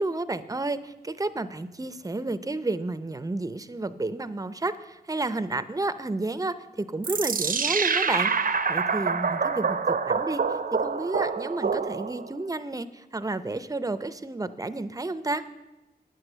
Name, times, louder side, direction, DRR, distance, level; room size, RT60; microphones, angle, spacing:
voice 1, 0.0-15.4, right 2 dB, 20° right, 13 dB, 0.6 m, -31 dB
sound 1, 7.0-12.3, right 5 dB, 60° right, 0.6 m, -26 dB
9.4 x 8.0 x 6.7 m, 1.0 s
cardioid pair, 65°, 17 cm